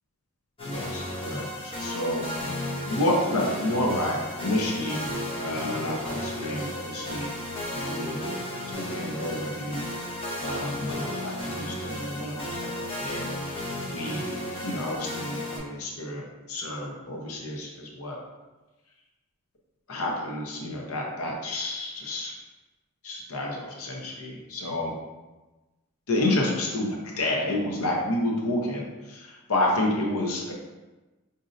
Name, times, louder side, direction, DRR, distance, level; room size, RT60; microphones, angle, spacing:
voice 1, 0.6-2.3 2.9-5.0 5.4-7.3 7.8-8.2 8.7-9.8 10.4-13.6 13.9-14.2 14.6-18.2 19.9-22.3 23.0-24.9 26.1-30.5, left 1 dB, 75° left, -1 dB, 0.7 m, -30 dB
sound 1, 0.6-15.6, left 1 dB, 25° left, 0.7 m, -34 dB
5.0 x 2.7 x 2.5 m, 1.1 s
head